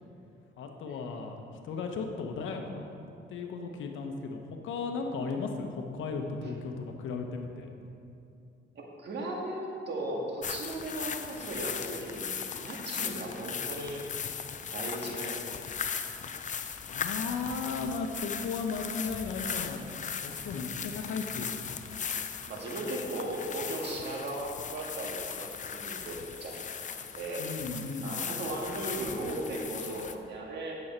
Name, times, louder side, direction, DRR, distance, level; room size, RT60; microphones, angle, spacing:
voice 1, 0.6-1.4 1.6-2.9 3.3-7.7 16.9-19.8 20.2-21.5 27.4-28.2, left 4 dB, 80° left, 4 dB, 1.0 m, -35 dB
voice 2, 9.0-14.0 14.7-15.6 20.5-20.6 22.5-26.5 26.9-27.4 28.0-30.7, right 1 dB, 60° right, -1 dB, 1.8 m, -37 dB
sound 1, 10.4-30.1, left 7 dB, 40° left, 0.5 m, -38 dB
9.4 x 7.2 x 4.4 m, 2.7 s
cardioid pair, 90°, 20 cm